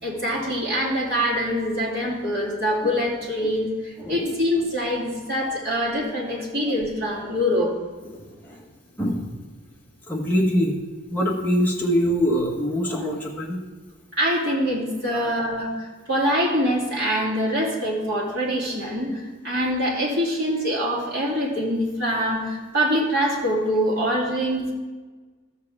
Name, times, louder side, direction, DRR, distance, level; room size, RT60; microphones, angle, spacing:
voice 1, 0.0-7.7 14.1-24.7, equal, 50° right, -6 dB, 2.9 m, -24 dB
voice 2, 4.0-4.3 8.0-8.6 9.0-9.3 10.1-10.8 11.1-13.6 15.1-15.3, equal, 10° left, -3 dB, 1.3 m, -24 dB
13.0 x 7.6 x 3.6 m, 1.3 s
head